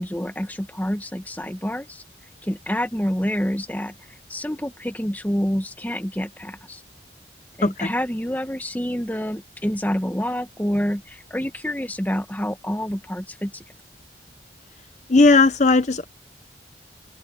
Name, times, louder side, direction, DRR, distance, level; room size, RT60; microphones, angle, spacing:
voice 1, 0.0-2.0 2.4-3.9 4.3-6.8 7.6-13.6, equal, 10° left, 1.1 m, -27 dB
voice 2, 15.1-16.0, left 3 dB, 40° left, 0.7 m, -16 dB
open air
head